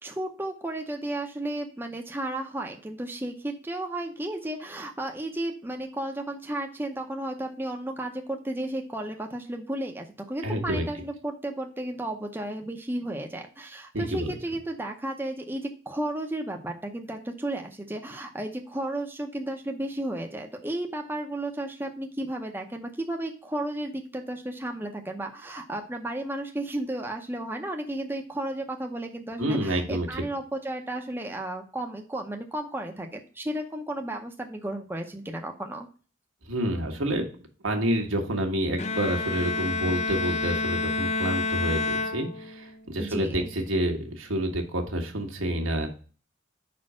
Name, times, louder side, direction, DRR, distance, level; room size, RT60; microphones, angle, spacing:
voice 1, 0.0-35.9 43.0-43.4, right 1 dB, 10° right, 2 dB, 0.7 m, -33 dB
voice 2, 10.4-10.8 13.9-14.3 29.4-30.2 36.4-37.3 37.6-45.9, right 1 dB, 75° right, 3 dB, 1.5 m, -28 dB
Bowed string instrument, 38.8-42.8, left 3 dB, 35° left, 0.5 m, -29 dB
5.3 x 4.3 x 6.0 m, 0.38 s
head